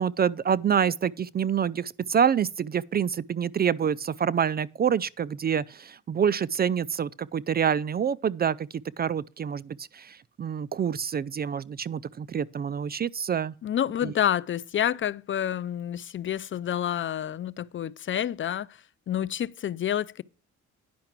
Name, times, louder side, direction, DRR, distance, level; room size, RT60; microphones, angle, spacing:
voice 1, 0.0-8.7 9.0-13.5 14.0-14.1, right 8 dB, 35° right, 0.4 m, -27 dB
voice 2, 13.6-18.8 19.1-20.2, left 10 dB, 40° left, 0.4 m, -28 dB
10.5 x 5.7 x 5.9 m
cardioid pair, 90°, 30 cm